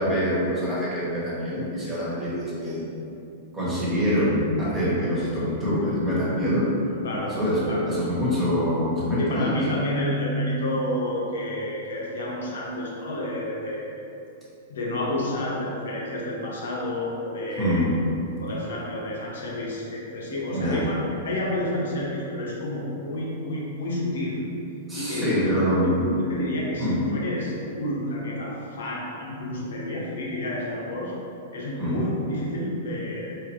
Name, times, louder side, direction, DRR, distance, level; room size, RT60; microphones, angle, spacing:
voice 1, 0.0-2.9 3.5-6.7 7.3-7.6 7.8-9.6 17.6-17.9 20.5-20.9 24.9-26.1 26.8-27.0 31.8-32.0, equal, 20° right, -9 dB, 1.4 m, -25 dB
voice 2, 7.0-7.3 7.6-7.8 9.2-13.9 14.7-17.9 18.4-20.9 21.2-24.4 25.0-25.6 26.3-31.1 31.5-33.4, left 1 dB, 70° left, -4 dB, 0.8 m, -30 dB
3.6 x 3.0 x 3.1 m, 2.8 s
figure-of-eight pair, 105°, 0 cm